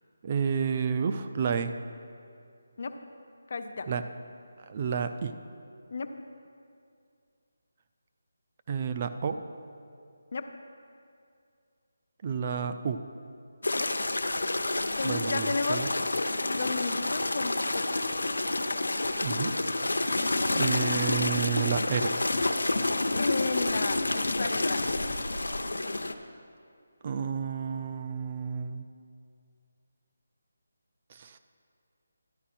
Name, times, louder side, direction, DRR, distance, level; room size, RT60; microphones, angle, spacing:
voice 1, 0.2-1.7 3.9-4.0 4.7-5.3 8.7-9.4 12.2-13.0 15.0-15.9 19.2-19.6 20.5-22.1 27.0-28.9 31.1-31.4, right 7 dB, 30° right, 9 dB, 0.4 m, -30 dB
voice 2, 3.5-3.9 5.9-6.1 10.3-10.5 13.8-13.9 15.0-15.8 16.4-18.0 23.2-24.9, left 4 dB, 50° left, 7 dB, 0.7 m, -33 dB
sound 1, 13.6-26.1, left 2 dB, 90° left, 0.6 m, -29 dB
11.5 x 10.5 x 4.3 m, 2.4 s
figure-of-eight pair, 165°, 0 cm